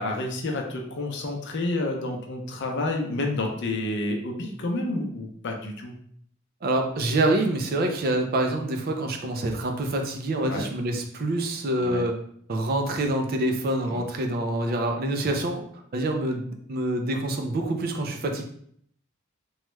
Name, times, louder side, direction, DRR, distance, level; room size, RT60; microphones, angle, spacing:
voice 1, 0.0-6.0 10.4-10.7 11.8-12.0 13.9-14.0, left 2 dB, 60° left, 2 dB, 0.6 m, -29 dB
voice 2, 6.6-12.2 12.5-15.6 15.9-18.4, right 1 dB, 45° right, 4 dB, 0.4 m, -26 dB
3.1 x 2.2 x 3.0 m, 0.64 s
head